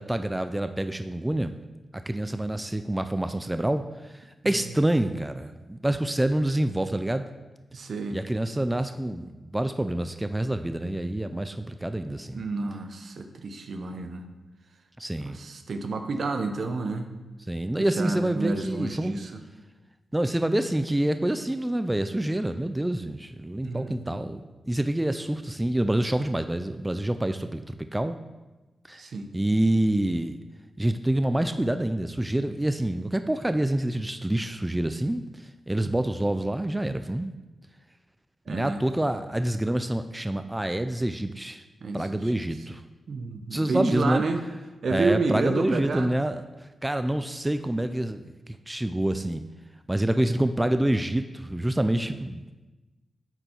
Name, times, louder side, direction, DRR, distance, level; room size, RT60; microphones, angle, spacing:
voice 1, 0.0-1.5 1.9-3.9 4.1-7.3 8.1-12.4 15.0-15.4 17.5-19.2 20.1-24.4 24.7-28.2 28.9-29.0 29.3-30.4 30.8-35.2 35.7-37.3 38.5-41.6 41.9-42.8 43.5-44.2 44.9-46.4 46.8-48.2 48.7-49.4 49.9-52.4, right 1 dB, 15° right, 9 dB, 0.4 m, -27 dB
voice 2, 7.7-8.2 12.3-14.3 15.2-17.1 17.8-19.4 23.6-24.2 29.0-29.3 35.8-36.0 38.5-38.8 41.8-42.3 43.1-44.4 44.8-46.1 52.0-52.1, right 3 dB, 70° right, 7 dB, 0.7 m, -30 dB
7.9 x 4.4 x 4.4 m, 1.1 s
cardioid pair, 60°, 0 cm